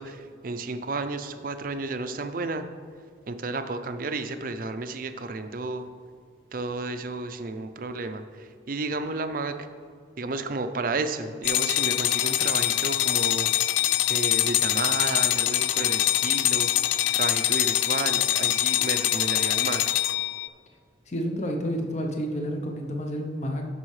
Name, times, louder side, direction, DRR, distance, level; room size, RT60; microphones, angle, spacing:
voice 1, 0.0-2.7 3.3-5.9 6.5-9.6 10.2-13.5 14.1-19.8, right 3 dB, 45° right, 9 dB, 0.5 m, -32 dB
sound 1, 11.4-20.5, left 14 dB, 75° left, 0.3 m, -24 dB
voice 2, 21.1-23.7, equal, 35° left, 2 dB, 0.7 m, -30 dB
13.5 x 5.5 x 3.2 m, 2.1 s
head